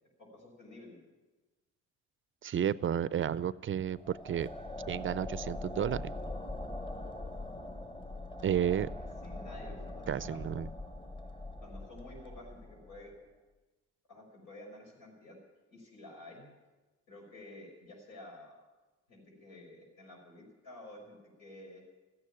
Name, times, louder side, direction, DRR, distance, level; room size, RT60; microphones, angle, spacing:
voice 1, 0.2-1.0 9.2-10.4 11.6-13.1 14.1-15.4 15.7-16.5 17.1-18.6 19.1-21.8, left 1 dB, 90° left, -1 dB, 6.1 m, -51 dB
voice 2, 2.4-4.5 4.9-6.1 8.4-8.9 10.1-10.7, right 9 dB, 45° right, 18 dB, 0.5 m, -32 dB
sound 1, 3.8-13.1, left 1 dB, 15° left, 1.1 m, -42 dB
14.0 x 9.6 x 10.0 m, 1.2 s
cardioid pair, 90°, 30 cm